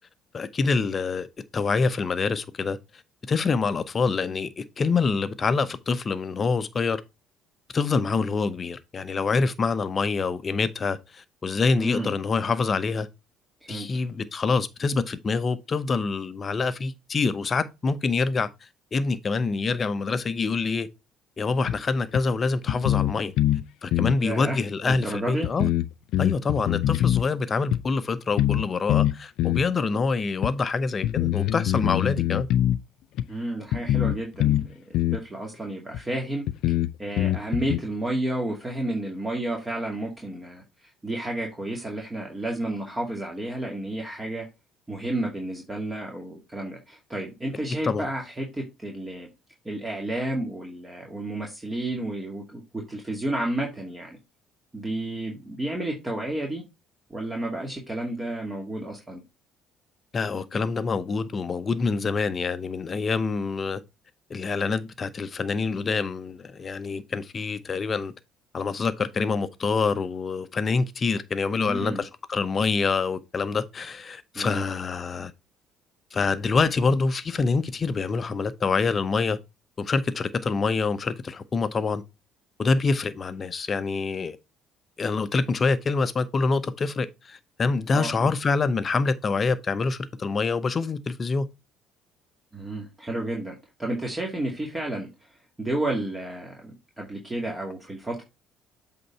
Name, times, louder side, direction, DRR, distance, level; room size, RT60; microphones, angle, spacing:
voice 1, 0.3-1.3 1.5-2.8 3.3-7.0 7.7-13.1 13.7-18.5 18.9-20.9 21.4-23.3 23.8-25.7 26.2-32.5 47.8-48.1 60.1-63.8 64.3-68.1 68.5-75.3 76.1-79.4 79.8-82.0 82.6-84.4 85.0-91.5, left 4 dB, 40° left, 0.8 m, -26 dB
voice 2, 11.7-12.2 13.6-13.9 24.2-24.6 24.8-25.5 33.3-36.4 37.0-44.4 44.9-49.3 49.6-54.2 54.7-56.6 57.1-59.2 71.5-72.0 74.3-74.6 87.9-88.3 92.5-98.2, right 1 dB, 20° right, 2.2 m, -31 dB
sound 1, 21.7-21.8 22.1-22.2 22.7-23.6 23.9-24.2 24.9-25.0 25.4-27.2 27.7-27.8 28.4-28.6 28.9-29.7 30.4-30.5 31.0-32.8 33.2-33.3 33.7-34.7 34.9-35.2 35.9-36.0 36.5-37.8, left 13 dB, 65° left, 0.4 m, -23 dB
7.8 x 3.9 x 4.2 m
hypercardioid pair, 55°, 0 cm